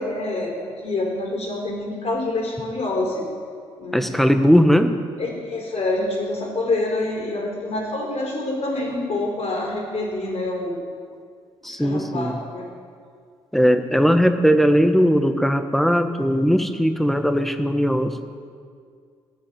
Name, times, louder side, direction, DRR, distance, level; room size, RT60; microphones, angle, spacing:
voice 1, 0.0-3.3 3.8-4.1 5.2-10.8 11.6-12.7, left 2 dB, 45° left, 0 dB, 4.4 m, -26 dB
voice 2, 3.9-5.0 11.6-12.4 13.5-18.2, equal, ahead, 8 dB, 1.3 m, -18 dB
16.0 x 7.4 x 8.8 m, 2.2 s
figure-of-eight pair, 45°, 14 cm